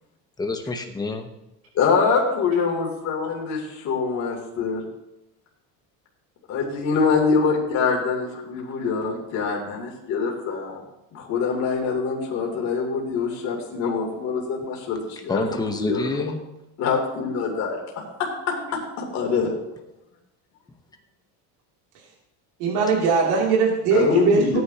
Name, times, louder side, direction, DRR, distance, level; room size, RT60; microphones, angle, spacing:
voice 1, 0.4-1.3 15.3-16.4, left 3 dB, 10° left, 4 dB, 1.0 m, -27 dB
voice 2, 1.7-4.8 6.5-10.8 11.1-15.4 15.7-16.2 16.8-19.5 23.9-24.6, left 5 dB, 45° left, -1 dB, 3.1 m, -24 dB
voice 3, 22.6-24.6, right 4 dB, 75° right, -3 dB, 3.0 m, -20 dB
17.0 x 9.5 x 2.9 m, 0.92 s
cardioid pair, 150°, 38 cm